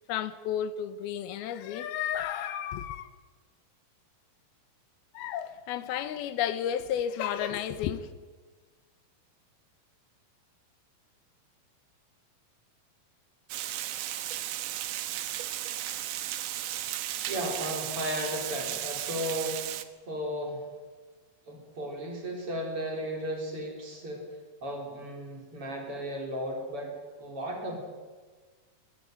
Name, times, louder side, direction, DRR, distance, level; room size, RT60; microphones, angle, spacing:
voice 1, 0.1-3.1 5.1-8.1, left 9 dB, 80° left, 2.8 m, -32 dB
Water, 13.5-19.8, right 13 dB, 70° right, 2.3 m, -35 dB
voice 2, 17.2-19.7 20.1-20.6 21.5-24.3 24.6-26.9 27.2-27.8, equal, 35° right, 4.7 m, -35 dB
21.0 x 15.0 x 9.2 m
omnidirectional pair, 4.4 m